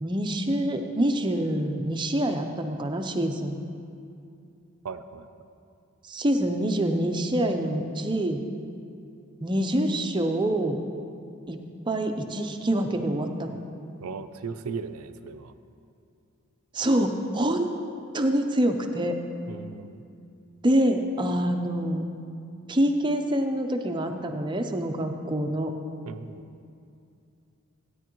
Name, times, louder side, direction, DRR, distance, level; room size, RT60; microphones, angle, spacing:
voice 1, 0.0-3.6 6.1-8.4 9.4-10.8 11.5-11.6 11.9-13.6 16.7-17.7 18.1-19.2 20.6-22.0 22.7-25.7, right 1 dB, 20° right, 5 dB, 0.6 m, -26 dB
voice 2, 4.8-5.3 14.0-15.5 19.5-20.0 26.1-26.5, right 5 dB, 80° right, 10 dB, 0.5 m, -37 dB
16.0 x 9.9 x 3.0 m, 2.5 s
head